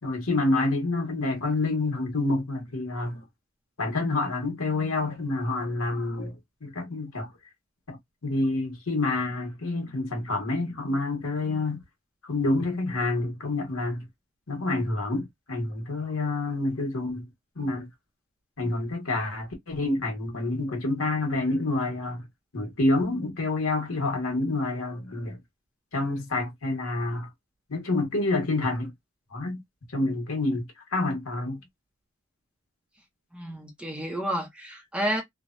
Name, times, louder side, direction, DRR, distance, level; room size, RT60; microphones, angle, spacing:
voice 1, 0.0-3.2 3.8-7.3 7.9-11.8 12.2-14.1 14.5-17.3 17.6-17.9 18.6-22.2 22.5-25.4 25.9-27.3 27.7-28.9 29.3-29.6 29.9-31.6, left 2 dB, 85° left, 1.3 m, -28 dB
voice 2, 33.3-35.2, equal, 5° right, 0.7 m, -30 dB
3.2 x 2.2 x 2.5 m
head